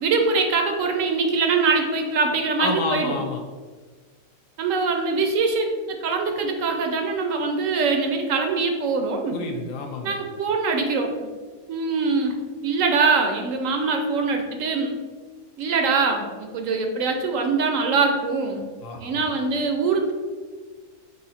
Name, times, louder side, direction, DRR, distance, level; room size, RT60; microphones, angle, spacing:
voice 1, 0.0-3.2 4.6-9.4 10.0-11.1 11.7-12.4 12.6-15.0 15.6-18.6 19.0-20.1, right 4 dB, 70° right, 4 dB, 0.9 m, -23 dB
voice 2, 2.6-3.4 9.3-10.2 18.8-19.2, left 3 dB, 70° left, 3 dB, 1.0 m, -29 dB
4.9 x 2.7 x 4.1 m, 1.4 s
omnidirectional pair, 1.5 m